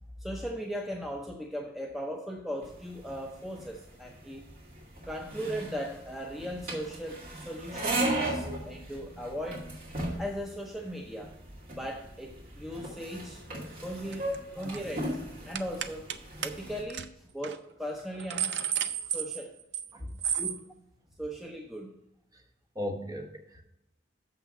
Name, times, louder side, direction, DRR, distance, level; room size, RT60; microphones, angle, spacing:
voice 1, 0.2-4.5 5.0-9.7 10.2-11.3 11.7-13.4 13.8-15.1 15.4-16.1 16.4-18.6 19.1-19.6 20.4-20.7 21.2-22.0, equal, ahead, 0 dB, 0.5 m, -38 dB
sound 1, 2.6-16.8, right 1 dB, 50° right, 2.4 m, -37 dB
sound 2, 14.1-14.4 14.6-14.9 15.5-16.2 16.4-16.5 16.9-17.1 17.4-17.6 18.0-19.9 20.2-20.6, right 8 dB, 75° right, 0.5 m, -32 dB
voice 2, 14.6-14.9 19.9-20.1 22.3-22.4 22.7-23.6, equal, 20° right, 1 dB, 1.0 m, -39 dB
7.2 x 5.9 x 5.3 m, 0.88 s
head